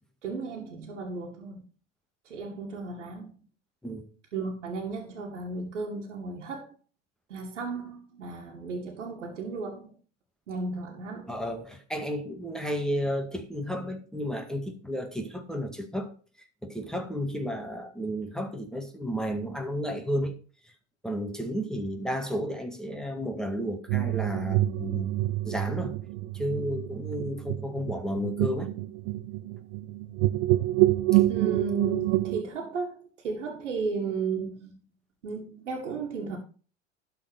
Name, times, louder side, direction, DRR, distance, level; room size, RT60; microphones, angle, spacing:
voice 1, 0.2-1.6 2.2-3.3 4.3-6.7 7.3-10.0 10.5-11.4 31.2-34.8 35.2-36.4, right 4 dB, 85° right, 2.1 m, -34 dB
voice 2, 11.3-16.1 16.6-20.3 20.6-20.7 21.0-26.0 26.3-28.7 31.1-31.2, equal, ahead, 1.9 m, -32 dB
sound 1, 23.9-32.4, right 17 dB, 65° right, 0.7 m, -27 dB
12.0 x 4.6 x 6.7 m
hypercardioid pair, 80°, 35 cm